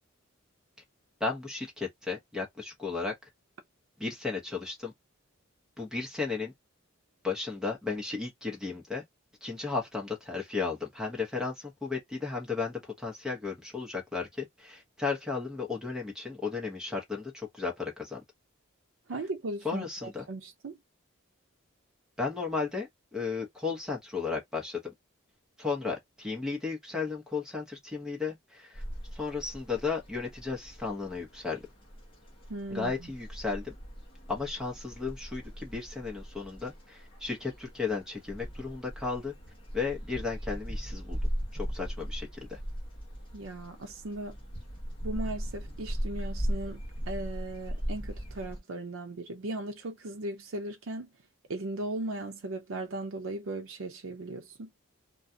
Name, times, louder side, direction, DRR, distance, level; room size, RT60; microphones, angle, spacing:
voice 1, 1.2-3.1 4.0-4.9 5.8-6.5 7.2-9.0 9.4-18.2 19.6-20.3 22.2-24.9 25.6-28.8 29.1-31.6 32.7-33.7 34.3-39.3 39.7-41.2 41.5-42.6, left 4 dB, 5° right, 0.9 m, -34 dB
voice 2, 19.1-20.8 32.5-33.1 43.3-44.4 45.0-51.1 51.5-54.7, right 2 dB, 70° right, 0.5 m, -37 dB
sound 1, 28.7-48.6, equal, 25° left, 0.9 m, -38 dB
2.4 x 2.3 x 2.6 m
head